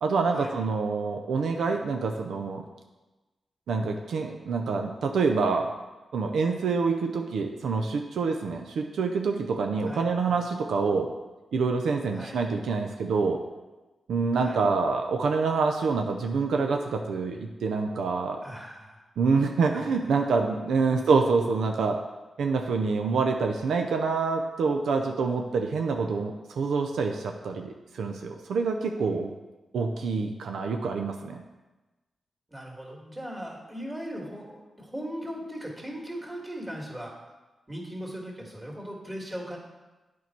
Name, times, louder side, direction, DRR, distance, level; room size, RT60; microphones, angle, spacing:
voice 1, 0.0-2.6 3.7-5.7 6.1-11.1 11.5-13.4 14.1-18.4 19.2-22.0 22.4-29.3 29.7-31.4, right 4 dB, 85° right, 3 dB, 0.5 m, -26 dB
voice 2, 9.8-10.4 12.1-12.4 14.4-14.6 18.4-19.0 19.7-19.8 20.9-21.2 32.5-37.1 37.7-39.6, equal, 20° right, -2 dB, 2.3 m, -38 dB
8.3 x 4.6 x 4.6 m, 1.1 s
cardioid pair, 55°, 0 cm